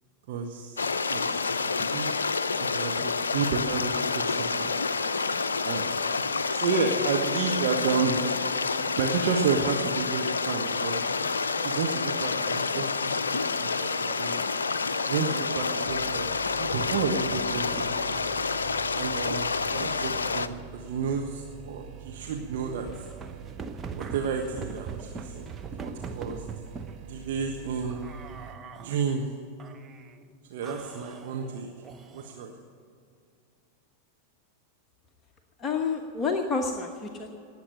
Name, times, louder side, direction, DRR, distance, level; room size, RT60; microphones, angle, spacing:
voice 1, 0.3-2.1 2.6-4.7 5.6-5.9 6.5-8.2 8.5-11.0 11.6-14.4 15.0-16.3 16.6-18.2 18.9-23.0 23.9-26.4 27.0-28.0 28.8-29.3 30.5-31.7 32.1-32.5, right 5 dB, 55° right, 2 dB, 1.3 m, -31 dB
sound 1, 0.8-20.5, left 4 dB, 75° left, 0.5 m, -28 dB
sound 2, 15.9-28.6, right 10 dB, 35° right, 1.3 m, -45 dB
sound 3, 22.6-27.0 27.8-29.1 29.6-30.2 30.6-32.5, right 5 dB, 20° right, 0.9 m, -41 dB
voice 2, 35.6-37.3, left 4 dB, 25° left, 3 dB, 1.1 m, -29 dB
19.0 x 8.1 x 9.2 m, 2.5 s
figure-of-eight pair, 90°, 0 cm